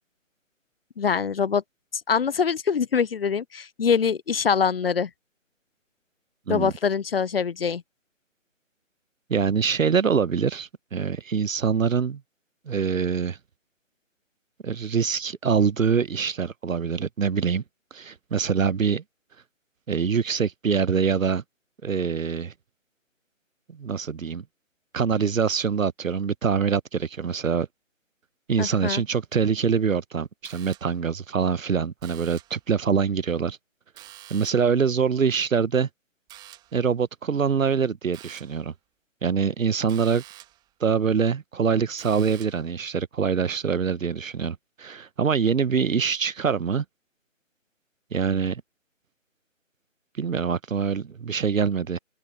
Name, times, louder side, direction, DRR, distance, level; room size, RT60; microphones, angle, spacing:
voice 1, 1.0-1.6 1.9-5.1 6.5-7.8 28.6-29.0, left 6 dB, 50° left, 0.5 m, -24 dB
voice 2, 9.3-12.2 12.7-13.4 14.6-17.6 17.9-19.0 19.9-21.4 21.8-22.5 23.7-24.4 24.9-27.7 28.5-33.6 34.3-35.9 36.7-38.7 39.2-40.2 40.8-46.8 48.1-48.6 50.2-52.0, right 6 dB, 80° right, 0.9 m, -24 dB
sound 1, 30.4-31.1 32.0-32.7 34.0-34.8 36.3-36.8 38.1-38.7 39.9-40.7 42.0-42.7, right 14 dB, 10° right, 2.0 m, -47 dB
open air
figure-of-eight pair, 150°, 39 cm